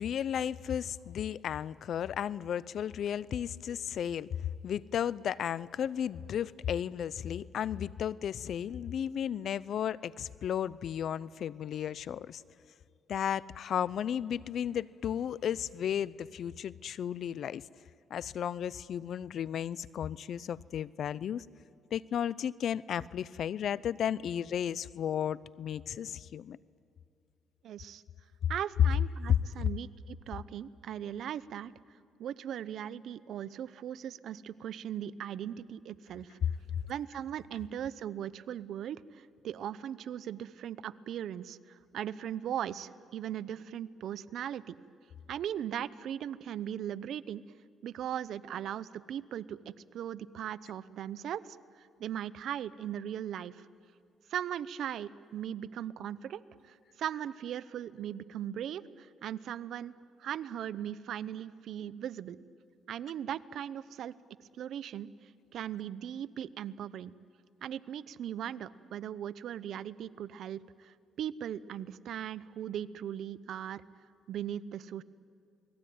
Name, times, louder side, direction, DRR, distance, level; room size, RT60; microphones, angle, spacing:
voice 1, 0.0-4.3 4.6-12.4 13.1-17.6 18.1-21.4 21.9-26.6, left 9 dB, 65° left, 20 dB, 0.6 m, -34 dB
voice 2, 27.6-28.0 28.5-31.7 32.2-36.4 36.9-44.8 45.3-47.4 47.8-53.7 54.3-59.9 60.2-62.4 62.9-64.2 64.6-67.1 67.6-73.8 74.3-75.0, right 10 dB, 70° right, 16 dB, 0.8 m, -39 dB
28.0 x 20.5 x 9.4 m, 2.5 s
cardioid pair, 90°, 0 cm